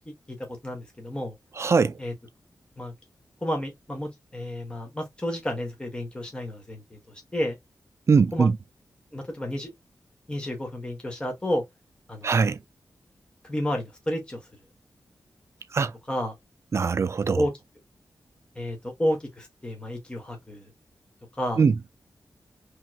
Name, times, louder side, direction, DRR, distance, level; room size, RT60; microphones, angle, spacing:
voice 1, 0.6-1.3 2.0-2.1 2.8-2.9 3.4-6.8 7.3-7.6 8.3-8.5 9.1-9.7 10.3-11.6 12.1-12.3 13.5-14.4 16.1-16.3 17.4-17.5 18.6-20.7 21.4-21.6, left 1 dB, 15° left, 1.1 m, -30 dB
voice 2, 1.6-2.0 8.1-8.6 12.2-12.6 15.7-15.9 16.7-17.4 21.6-21.8, right 5 dB, 45° right, 0.3 m, -21 dB
3.0 x 2.9 x 2.3 m
wide cardioid pair, 110°, 6 cm